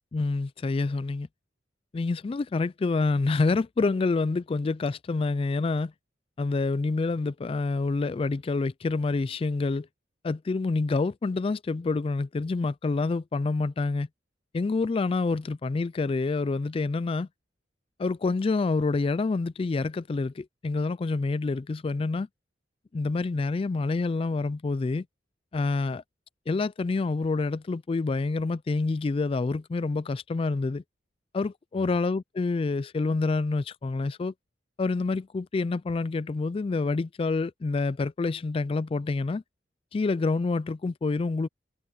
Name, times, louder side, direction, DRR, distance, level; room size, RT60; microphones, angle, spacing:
voice 1, 0.1-1.3 1.9-5.9 6.4-9.9 10.2-14.1 14.5-17.3 18.0-22.3 22.9-25.1 25.5-26.0 26.5-30.8 31.3-34.3 34.8-39.4 39.9-41.5, left 3 dB, 30° left, 0.3 m, -27 dB
head